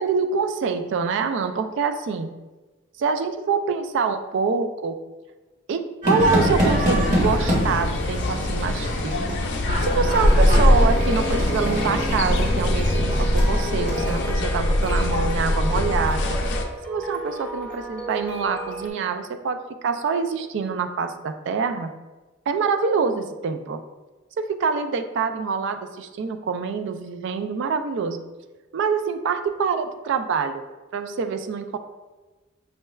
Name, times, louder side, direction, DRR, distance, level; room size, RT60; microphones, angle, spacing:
voice 1, 0.0-2.3 3.0-5.0 5.7-9.3 9.8-16.4 16.9-21.9 22.5-23.8 24.4-28.2 28.7-30.6 30.9-31.8, right 5 dB, 65° right, 8 dB, 0.3 m, -25 dB
sound 1, 6.0-14.2, equal, 40° right, 1.0 m, -27 dB
sound 2, 6.2-16.6, left 1 dB, 60° left, 0.4 m, -22 dB
sound 3, 9.2-18.9, right 1 dB, 10° left, 0.8 m, -35 dB
5.4 x 3.2 x 2.3 m, 1.2 s
head